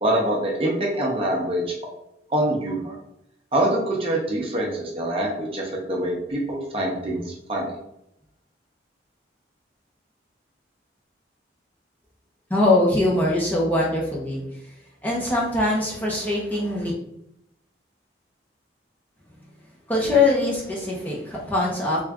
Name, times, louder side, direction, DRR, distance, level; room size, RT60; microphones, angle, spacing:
voice 1, 0.0-1.8 2.3-3.0 3.5-7.7, right 1 dB, 30° right, -1 dB, 0.6 m, -25 dB
voice 2, 12.5-14.7 15.0-16.9 19.9-22.0, left 2 dB, 10° left, -4 dB, 0.7 m, -22 dB
3.4 x 2.5 x 3.4 m, 0.81 s
head